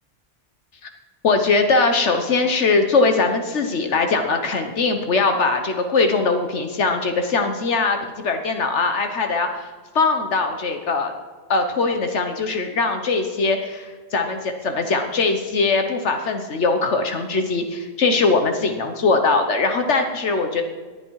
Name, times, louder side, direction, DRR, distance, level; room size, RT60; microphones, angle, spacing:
voice 1, 1.2-11.1 11.5-20.6, left 4 dB, 80° left, 6 dB, 1.4 m, -21 dB
18.5 x 10.5 x 4.7 m, 1.4 s
omnidirectional pair, 1.2 m